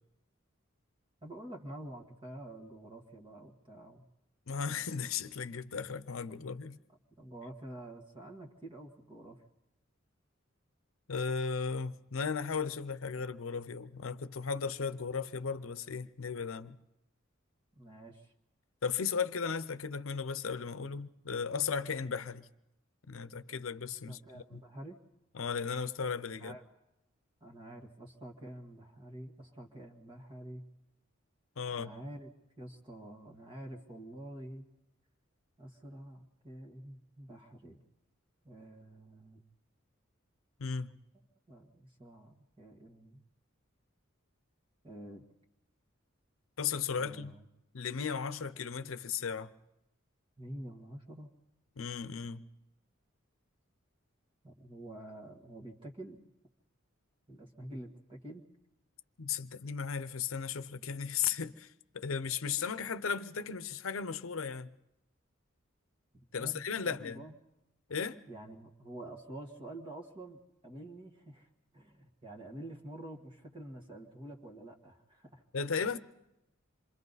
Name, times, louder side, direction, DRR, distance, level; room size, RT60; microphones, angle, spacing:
voice 1, 1.2-4.0 7.1-9.4 17.8-18.3 24.1-25.0 26.4-26.7 27.4-30.6 31.7-32.3 32.6-34.7 35.6-37.8 38.4-39.4 41.5-43.2 44.8-45.2 47.0-47.5 50.4-51.3 54.4-56.2 57.3-58.5 66.4-67.4 68.3-71.5 71.7-75.4, right 1 dB, 25° right, 1.7 m, -48 dB
voice 2, 4.5-6.8 11.1-16.8 18.8-22.5 23.1-24.6 25.3-26.6 31.6-31.9 40.6-41.0 46.6-47.4 47.7-49.5 51.8-52.4 59.2-64.7 66.3-67.2 67.9-68.2 75.5-76.0, left 6 dB, 85° left, 0.8 m, -36 dB
27.5 x 24.0 x 4.1 m
head